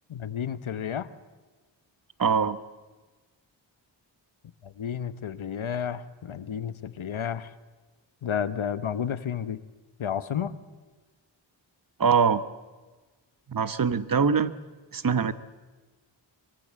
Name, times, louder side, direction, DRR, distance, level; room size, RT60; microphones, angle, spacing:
voice 1, 0.1-1.1 4.6-7.5 8.2-9.6 10.0-10.5, left 8 dB, 85° left, 13 dB, 1.1 m, -31 dB
voice 2, 2.2-2.6 12.0-12.4 13.5-14.5 14.9-15.3, right 6 dB, 45° right, 13 dB, 1.1 m, -23 dB
23.5 x 23.5 x 7.6 m, 1.3 s
wide cardioid pair, 75°, 47 cm